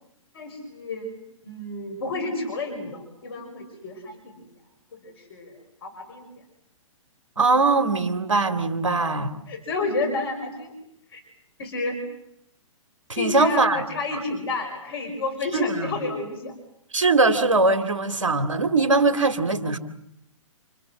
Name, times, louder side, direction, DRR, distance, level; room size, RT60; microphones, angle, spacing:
voice 1, 0.3-4.4 5.2-5.5 5.8-6.2 9.5-10.7 11.1-11.2 11.6-12.0 13.1-16.5, left 3 dB, 45° left, 6 dB, 6.0 m, -30 dB
voice 2, 7.4-9.3 13.1-13.8 14.1-14.2 15.5-15.9 16.9-19.8, right 3 dB, 65° right, 8 dB, 3.0 m, -21 dB
30.0 x 25.0 x 6.5 m, 0.78 s
figure-of-eight pair, 120°, 17 cm